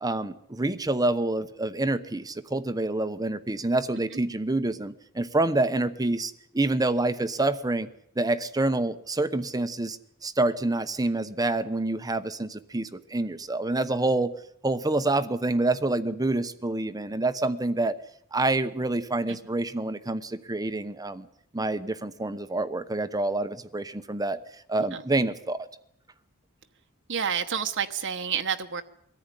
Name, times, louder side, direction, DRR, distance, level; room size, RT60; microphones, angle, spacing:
voice 1, 0.0-7.9 8.2-14.3 14.6-18.0 18.3-21.3 21.5-24.4 24.7-25.7, right 2 dB, 15° right, 11 dB, 0.9 m, -27 dB
voice 2, 27.1-28.8, right 7 dB, 60° right, 6 dB, 1.1 m, -29 dB
23.0 x 14.5 x 9.9 m, 0.71 s
head